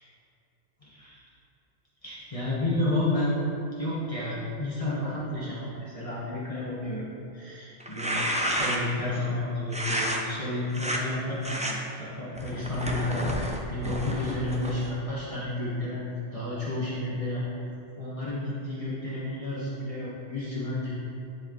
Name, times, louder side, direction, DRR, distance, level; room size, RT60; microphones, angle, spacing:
voice 1, 0.8-1.2 2.0-3.4 3.8-7.1 7.3-17.6 18.0-20.9, left 2 dB, 30° left, -9 dB, 1.3 m, -31 dB
sound 1, 7.8-9.0 9.7-10.2 10.7-11.0 11.4-11.7 12.4-14.9, equal, 10° right, 0.4 m, -30 dB
11.0 x 4.5 x 3.9 m, 2.8 s
omnidirectional pair, 1.3 m